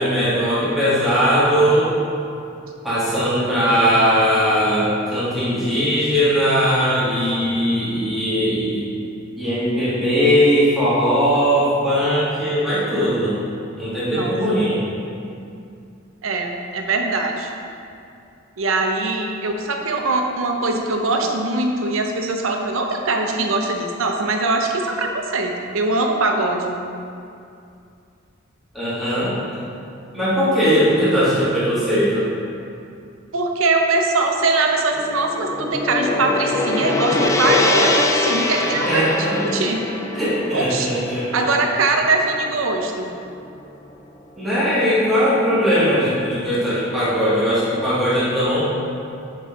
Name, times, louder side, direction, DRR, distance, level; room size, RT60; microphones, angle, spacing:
voice 1, 0.0-1.9 2.8-8.8 9.4-13.4 13.8-14.8 28.7-29.3 30.1-32.3 38.8-39.6 40.1-41.5 44.4-48.6, equal, ahead, -12 dB, 1.5 m, -19 dB
voice 2, 14.1-14.6 16.2-17.5 18.6-26.8 33.3-39.8 40.5-40.9 41.3-43.1, right 3 dB, 80° right, 3 dB, 0.6 m, -22 dB
Gong, 34.9-43.3, left 2 dB, 15° left, 0.3 m, -23 dB
6.4 x 5.1 x 3.3 m, 2.5 s
head